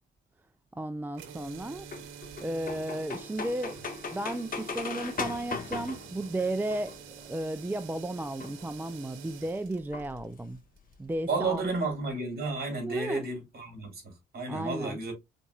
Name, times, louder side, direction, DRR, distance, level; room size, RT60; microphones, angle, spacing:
voice 1, 0.7-1.9 2.4-3.8 4.1-10.6 11.0-11.6 12.8-13.3 14.5-15.0, right 1 dB, 10° right, 0.4 m, -34 dB
sound 1, 1.1-11.2, right 8 dB, 90° right, 0.9 m, -48 dB
sound 2, 1.9-7.2 8.2-8.7 9.9-10.6 10.9-11.0 11.2-11.3 11.5-11.9, left 4 dB, 45° left, 1.6 m, -38 dB
voice 2, 11.3-15.1, right 3 dB, 50° right, 3.3 m, -32 dB
5.1 x 4.1 x 2.4 m
cardioid pair, 90°, 20 cm